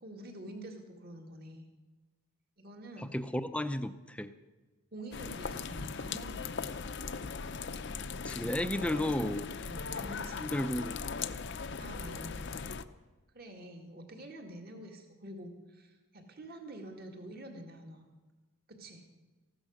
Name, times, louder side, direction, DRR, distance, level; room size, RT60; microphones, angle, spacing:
voice 1, 0.0-1.7 2.6-3.2 4.9-6.7 9.6-10.5 11.8-12.5 13.3-18.1 18.8-19.1, right 1 dB, 45° right, 3 dB, 2.1 m, -47 dB
voice 2, 3.0-4.3 8.2-9.5 10.4-11.0, left 1 dB, 5° left, 11 dB, 0.5 m, -33 dB
sound 1, 5.1-12.8, left 5 dB, 55° left, 0.6 m, -39 dB
15.0 x 12.0 x 6.5 m, 1.2 s
head